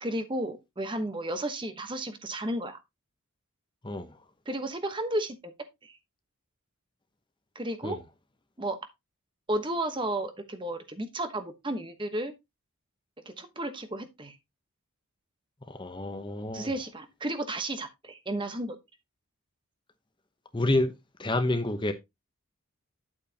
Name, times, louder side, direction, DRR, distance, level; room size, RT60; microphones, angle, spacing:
voice 1, 0.0-2.8 4.5-5.5 5.8-6.0 7.5-8.0 8.6-8.8 9.5-12.3 13.2-14.4 16.5-18.8, right 1 dB, 20° right, 1.1 m, -33 dB
voice 2, 3.8-4.2 7.8-8.0 15.7-16.7 20.5-21.9, left 1 dB, 20° left, 0.8 m, -29 dB
9.3 x 8.5 x 2.9 m
head